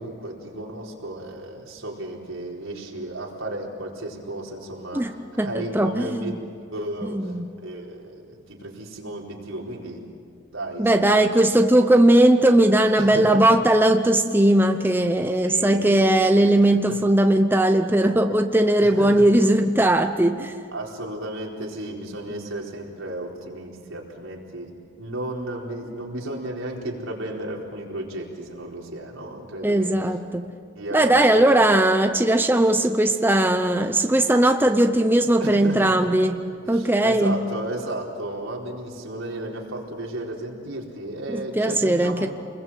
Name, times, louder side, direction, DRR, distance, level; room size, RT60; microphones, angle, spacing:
voice 1, 0.0-7.3 7.6-10.0 10.5-11.3 13.0-13.5 15.4-16.1 16.9-17.0 18.8-19.2 20.7-24.7 25.0-30.0 30.7-31.4 35.4-36.1 36.6-42.3, right 1 dB, 85° right, -2 dB, 4.4 m, -34 dB
voice 2, 5.4-6.3 7.0-7.5 10.8-20.5 29.6-30.5 30.9-36.4 36.7-37.4 41.3-42.3, right 1 dB, 10° right, 6 dB, 0.8 m, -19 dB
29.5 x 21.5 x 7.6 m, 2.3 s
head